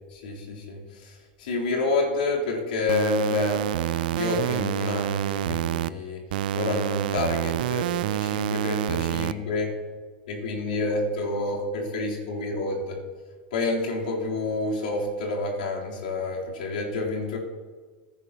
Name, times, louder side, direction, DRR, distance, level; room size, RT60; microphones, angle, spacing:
voice 1, 0.2-1.1 1.4-6.2 6.5-9.7 10.3-13.0 13.5-17.4, left 3 dB, 80° left, -3 dB, 3.4 m, -28 dB
sound 1, 2.9-5.9 6.3-9.3, right 13 dB, 75° right, 0.4 m, -27 dB
18.0 x 10.5 x 2.9 m, 1.5 s
hypercardioid pair, 110°, 5 cm